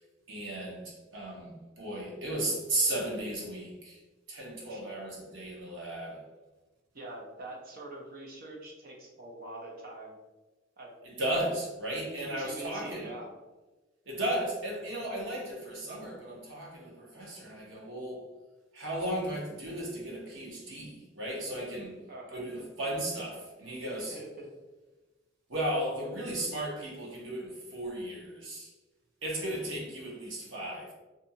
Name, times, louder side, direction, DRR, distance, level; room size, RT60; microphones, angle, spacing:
voice 1, 0.3-4.0 4.3-6.2 11.2-13.1 14.1-18.2 18.7-21.9 22.3-24.2 25.5-28.7 29.2-30.9, right 1 dB, 90° right, -3 dB, 0.9 m, -35 dB
voice 2, 6.9-10.2 10.8-11.0 12.2-13.3 22.1-22.4 24.1-24.5, right 2 dB, 50° right, 0 dB, 0.6 m, -44 dB
2.6 x 2.3 x 2.7 m, 1.2 s
head